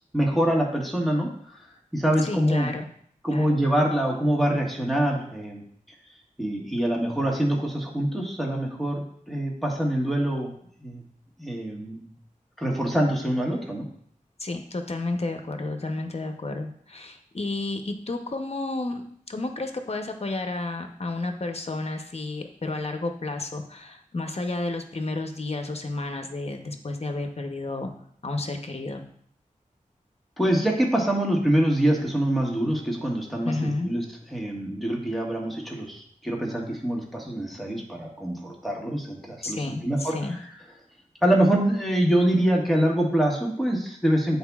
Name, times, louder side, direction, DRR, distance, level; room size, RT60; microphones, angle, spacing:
voice 1, 0.1-1.6 1.9-2.7 3.2-5.6 6.4-10.5 10.8-11.0 11.4-12.0 12.6-13.9 30.4-34.0 34.3-40.4 41.2-44.4, right 1 dB, ahead, -2 dB, 1.5 m, -25 dB
voice 2, 2.2-2.9 3.3-3.6 14.4-27.9 28.2-29.0 33.4-33.9 39.4-40.4, left 2 dB, 50° left, 5 dB, 0.8 m, -31 dB
10.0 x 4.1 x 2.4 m, 0.64 s
wide cardioid pair, 65°, 14 cm